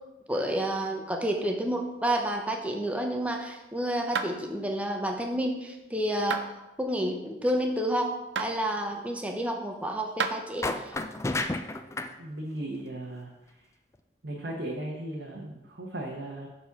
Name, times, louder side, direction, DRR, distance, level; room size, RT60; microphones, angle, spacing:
voice 1, 0.3-6.4 6.8-10.9, right 1 dB, 10° right, 2 dB, 0.8 m, -30 dB
sound 1, 4.1-4.3 6.3-6.5 8.4-8.5 10.2-10.4, right 5 dB, 90° right, 0.5 m, -29 dB
sound 2, 10.6-12.1, left 2 dB, 15° left, 0.3 m, -31 dB
voice 2, 12.2-13.6 14.2-16.5, right 1 dB, 70° right, -3 dB, 1.0 m, -37 dB
7.1 x 4.3 x 5.9 m, 1.0 s
head